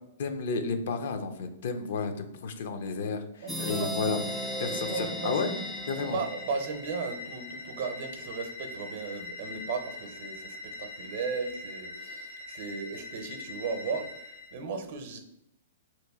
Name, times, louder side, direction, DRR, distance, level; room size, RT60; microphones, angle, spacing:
voice 1, 0.2-4.2 4.6-5.5 5.9-6.2, left 4 dB, 65° left, 7 dB, 0.5 m, -32 dB
voice 2, 3.4-4.0 4.7-5.7 6.0-15.2, right 4 dB, 60° right, 7 dB, 0.6 m, -36 dB
sound 1, 3.5-7.0, equal, ahead, 0.4 m, -36 dB
sound 2, 4.1-14.6, left 3 dB, 80° left, 1.4 m, -43 dB
2.9 x 2.6 x 3.5 m, 0.81 s
hypercardioid pair, 130°, 0 cm